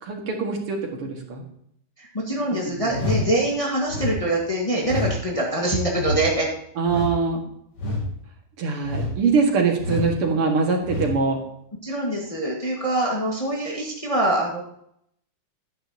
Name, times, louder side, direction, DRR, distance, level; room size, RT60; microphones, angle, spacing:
voice 1, 0.0-1.4 2.5-3.0 6.8-7.4 8.6-11.4, right 4 dB, 85° right, 2 dB, 2.8 m, -23 dB
voice 2, 2.0-6.5 11.8-14.6, right 1 dB, 15° left, -3 dB, 1.6 m, -24 dB
sound 1, 2.9-3.3 3.9-4.2 4.8-5.2 6.0-6.2 6.9-7.2 7.8-8.0 8.8-9.2 9.8-10.1 10.8-11.1, left 2 dB, 80° left, 4.1 m, -27 dB
11.5 x 10.0 x 2.9 m, 0.71 s
omnidirectional pair, 2.4 m